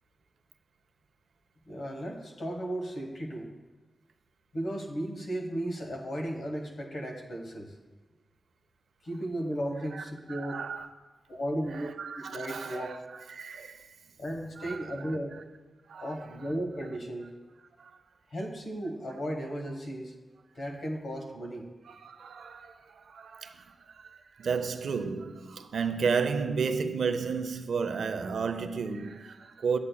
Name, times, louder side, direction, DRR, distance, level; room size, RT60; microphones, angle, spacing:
voice 1, 1.7-3.5 4.5-7.7 9.0-10.6 11.3-13.0 14.2-15.4 16.0-17.3 18.3-20.1 20.5-21.7, right 1 dB, 65° left, 1.2 m, -35 dB
voice 2, 10.3-10.9 11.7-13.0 13.3-13.9 14.6-15.2 15.9-16.3 17.8-17.9 21.9-23.7 24.0-29.8, right 5 dB, 85° right, 0.4 m, -33 dB
9.5 x 8.5 x 2.2 m
wide cardioid pair, 145°, 0 cm